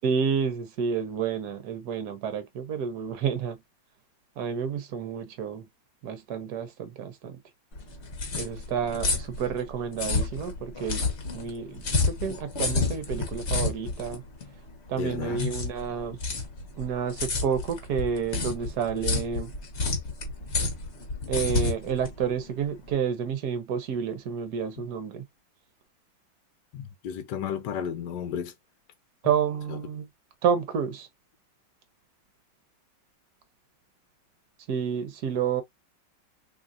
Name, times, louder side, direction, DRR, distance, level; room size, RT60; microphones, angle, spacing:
voice 1, 0.0-3.6 4.4-5.6 6.0-7.4 8.4-11.1 11.3-14.2 14.9-16.2 16.8-19.5 21.3-25.2 29.2-30.1 30.4-31.1 34.7-35.6, right 7 dB, 65° right, 1.3 m, -30 dB
sound 1, 7.7-22.9, left 3 dB, 45° left, 1.3 m, -30 dB
voice 2, 15.0-15.5 24.8-24.9 26.7-28.5, left 8 dB, 75° left, 1.2 m, -32 dB
3.7 x 3.2 x 2.5 m
omnidirectional pair, 2.0 m